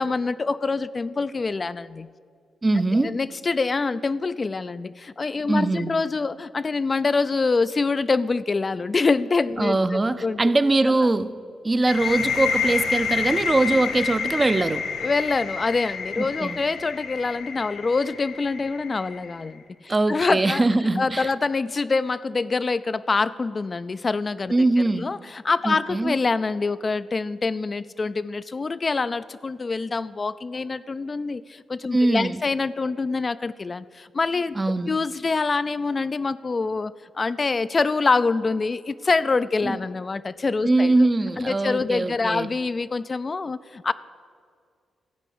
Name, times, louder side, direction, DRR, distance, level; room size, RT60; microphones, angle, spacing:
voice 1, 0.0-2.1 3.0-10.4 15.0-20.6 21.0-24.5 25.0-34.6 34.9-40.9 41.4-43.9, left 4 dB, 40° left, 13 dB, 0.3 m, -25 dB
voice 2, 2.6-3.1 5.5-5.9 9.6-11.3 11.6-14.8 16.2-16.6 19.9-21.3 24.5-25.1 25.6-26.2 31.9-32.4 34.6-35.0 39.6-39.8 40.6-42.5, right 2 dB, 30° right, 12 dB, 0.5 m, -22 dB
sound 1, 11.9-19.4, left 6 dB, 85° left, 1.6 m, -29 dB
13.5 x 4.9 x 8.4 m, 2.2 s
cardioid pair, 60°, 0 cm